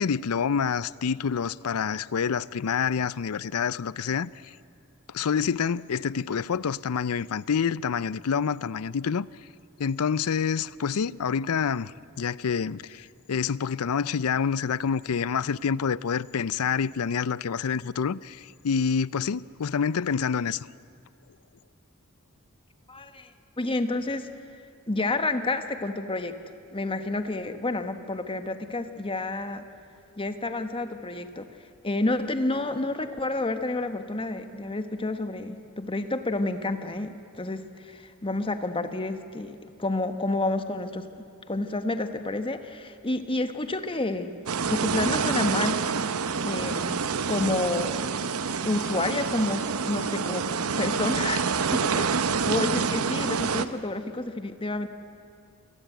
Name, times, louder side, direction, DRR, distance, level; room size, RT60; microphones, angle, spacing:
voice 1, 0.0-4.5 5.1-9.3 9.8-20.7, left 6 dB, 90° left, 0.5 m, -27 dB
voice 2, 22.9-23.3 23.6-24.3 24.9-26.4 26.7-29.6 30.2-31.5 31.8-41.1 41.5-44.3 44.7-45.8 46.4-47.9 48.6-52.1 52.4-54.9, left 2 dB, 25° left, 1.2 m, -29 dB
sound 1, 44.5-53.7, right 5 dB, 80° right, 0.8 m, -27 dB
27.5 x 18.0 x 9.3 m
head